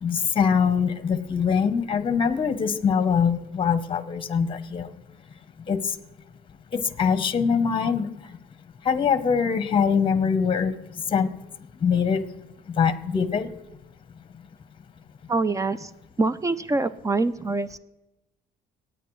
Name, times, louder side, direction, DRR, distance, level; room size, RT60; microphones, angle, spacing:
voice 1, 0.0-4.9 5.7-5.8 6.7-8.1 8.8-10.8 11.1-11.3 11.8-12.2 12.8-13.5, left 6 dB, 30° left, 12 dB, 0.8 m, -23 dB
voice 2, 15.3-15.9 16.2-17.8, right 3 dB, 20° right, 16 dB, 0.4 m, -25 dB
24.0 x 9.2 x 3.1 m, 0.97 s
cardioid pair, 110°, 17 cm